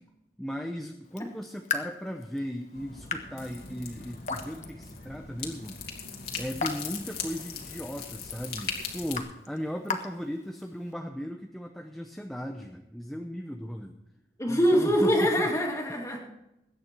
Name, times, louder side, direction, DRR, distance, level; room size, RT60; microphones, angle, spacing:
voice 1, 0.4-5.8 6.4-14.0 14.5-15.5, equal, ahead, 2 dB, 0.8 m, -37 dB
Raindrop / Drip, 1.0-10.9, left 4 dB, 40° left, 1.3 m, -40 dB
sound 1, 2.7-9.2, left 6 dB, 65° left, 2.7 m, -39 dB
voice 2, 14.4-16.2, equal, 20° left, 0 dB, 2.5 m, -24 dB
21.0 x 9.4 x 4.5 m, 0.90 s
head